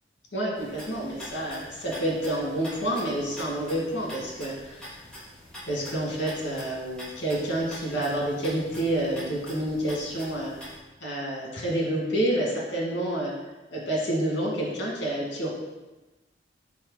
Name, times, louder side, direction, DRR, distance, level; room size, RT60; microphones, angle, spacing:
voice 1, 0.3-4.9 5.7-10.5 11.0-13.3 13.7-15.5, right 1 dB, 80° left, -2 dB, 1.7 m, -28 dB
sound 1, 0.5-10.8, equal, 5° left, 1.8 m, -44 dB
4.8 x 4.2 x 4.7 m, 1.1 s
head